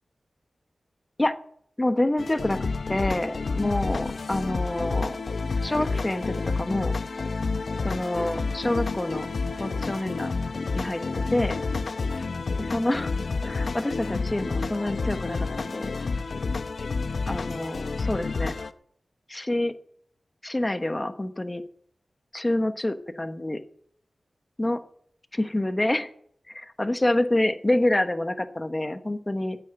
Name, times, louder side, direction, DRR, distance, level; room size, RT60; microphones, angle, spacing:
voice 1, 1.8-5.2 5.6-6.9 7.8-9.3 9.6-10.3 10.7-11.6 12.6-13.1 13.4-15.9 17.3-18.5 19.3-19.7 20.4-21.6 22.3-23.6 24.6-24.8 25.3-26.1 26.5-29.6, left 1 dB, 25° left, 10 dB, 1.2 m, -27 dB
sound 1, 2.2-18.7, left 4 dB, 70° left, 0.7 m, -29 dB
9.7 x 8.7 x 8.9 m, 0.64 s
wide cardioid pair, 60°, 0 cm